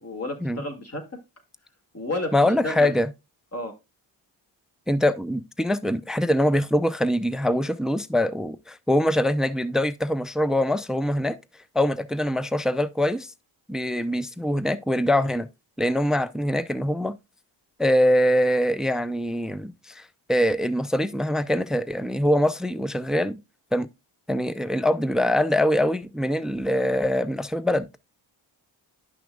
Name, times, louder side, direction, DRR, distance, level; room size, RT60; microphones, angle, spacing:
voice 1, 0.0-1.0 1.9-2.3 2.6-2.9 3.5-3.7, left 1 dB, 30° left, 2.3 m, -31 dB
voice 2, 2.3-3.1 4.9-11.4 11.7-13.3 13.7-15.5 15.8-17.1 17.8-23.4 23.7-23.9 24.3-27.9, left 1 dB, ahead, 0.5 m, -23 dB
11.0 x 5.9 x 2.3 m
supercardioid pair, 50°, 48 cm